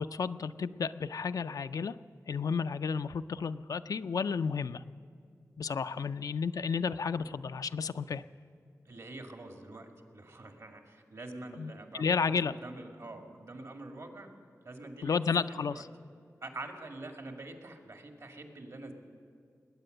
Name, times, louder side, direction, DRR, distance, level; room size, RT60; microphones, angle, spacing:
voice 1, 0.0-1.9 2.3-4.8 5.6-8.2 11.6-12.5 15.0-15.7, left 5 dB, 85° left, 11 dB, 0.4 m, -32 dB
voice 2, 8.8-14.4 14.6-15.8 16.4-18.9, right 2 dB, 65° right, 3 dB, 2.1 m, -46 dB
20.0 x 9.2 x 7.8 m, 2.4 s
wide cardioid pair, 65°, 6 cm